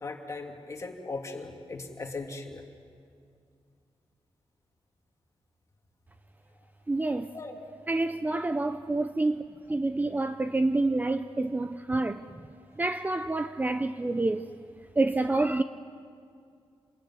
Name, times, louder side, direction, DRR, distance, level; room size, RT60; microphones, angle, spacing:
voice 1, 0.0-2.6 7.3-7.6, left 3 dB, 30° left, 2.7 m, -38 dB
voice 2, 6.9-7.3 7.9-9.4 9.7-12.3 12.8-14.5 15.0-15.6, right 2 dB, 15° right, 0.6 m, -28 dB
27.5 x 20.0 x 9.7 m
wide cardioid pair, 150°, 10 cm